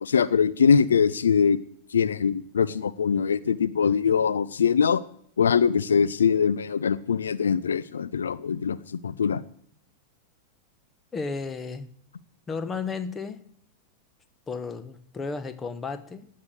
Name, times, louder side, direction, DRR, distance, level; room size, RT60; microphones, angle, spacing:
voice 1, 0.0-1.6 1.9-5.0 5.4-9.4, left 6 dB, 70° left, 0.5 m, -22 dB
voice 2, 11.1-11.9 12.5-13.5 14.5-16.3, left 4 dB, 20° left, 1.2 m, -33 dB
17.5 x 6.7 x 9.3 m
figure-of-eight pair, 90°, 0 cm